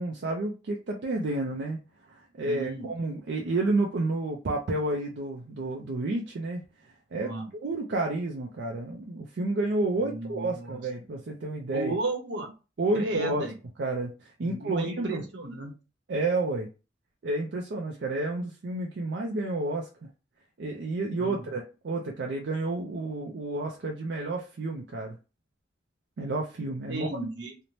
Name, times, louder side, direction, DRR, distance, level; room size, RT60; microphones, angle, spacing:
voice 1, 0.0-1.8 2.1-6.6 7.1-12.0 12.8-13.5 13.8-15.3 16.1-16.7 17.2-19.9 20.6-25.2 26.2-27.1, right 2 dB, 70° right, 0 dB, 0.4 m, -30 dB
voice 2, 2.4-2.9 7.2-7.4 10.0-10.7 11.7-12.5 12.9-13.5 14.4-15.7 21.2-21.3 26.9-27.5, right 2 dB, 85° right, 2 dB, 0.8 m, -33 dB
2.7 x 2.0 x 3.0 m, 0.31 s
head